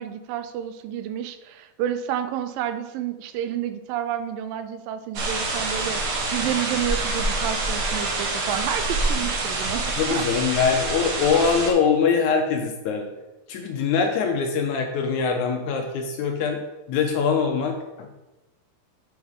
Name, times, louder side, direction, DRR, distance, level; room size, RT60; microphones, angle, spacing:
voice 1, 0.0-10.3, right 10 dB, 85° right, 10 dB, 2.3 m, -30 dB
sound 1, 5.1-11.7, right 2 dB, 65° right, 1.3 m, -26 dB
voice 2, 10.0-13.1 13.5-16.6 16.9-18.1, left 6 dB, 75° left, 4 dB, 1.9 m, -23 dB
7.1 x 4.8 x 5.3 m, 1.1 s
omnidirectional pair, 3.9 m